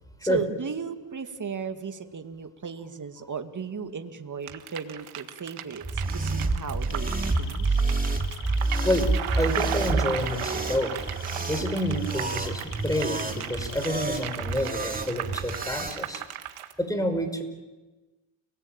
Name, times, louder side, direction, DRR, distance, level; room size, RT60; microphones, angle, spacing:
voice 1, 0.2-7.8, right 5 dB, 35° right, 7 dB, 2.4 m, -35 dB
sound 1, 4.5-16.7, right 11 dB, 80° right, 1.9 m, -36 dB
sound 2, 5.8-16.0, right 3 dB, 15° right, 2.9 m, -29 dB
sound 3, 6.9-14.8 15.0-15.4, left 10 dB, 85° left, 2.3 m, -45 dB
voice 2, 9.4-11.0 11.3-16.2 16.8-17.4, equal, 5° left, 8 dB, 5.4 m, -28 dB
30.0 x 19.5 x 9.1 m, 1.2 s
cardioid pair, 75°, 49 cm